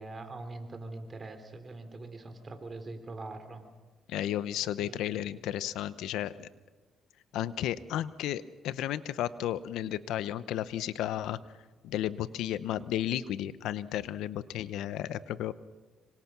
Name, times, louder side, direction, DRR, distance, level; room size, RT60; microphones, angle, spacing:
voice 1, 0.0-3.6 4.8-5.2, right 2 dB, 35° right, 7 dB, 3.6 m, -43 dB
voice 2, 4.1-6.5 7.3-11.4 11.8-15.5, left 12 dB, 90° left, 15 dB, 0.9 m, -33 dB
26.0 x 24.5 x 6.1 m, 1.3 s
cardioid pair, 90°, 0 cm